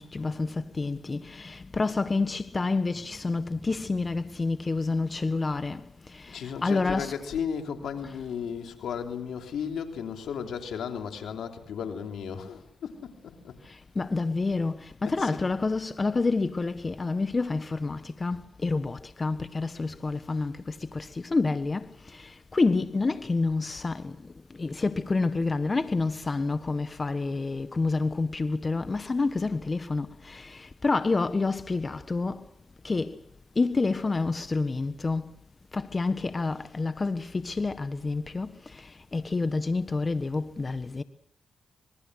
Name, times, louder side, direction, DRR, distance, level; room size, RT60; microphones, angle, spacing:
voice 1, 0.0-5.8 6.1-7.2 8.0-8.1 13.9-21.9 22.1-24.1 24.6-32.4 32.8-33.1 33.6-35.2 35.7-38.5 39.1-41.0, left 3 dB, 40° left, 1.4 m, -28 dB
voice 2, 6.3-13.6 15.0-15.4, left 7 dB, 85° left, 3.3 m, -35 dB
26.5 x 22.5 x 6.5 m
cardioid pair, 55°, 0 cm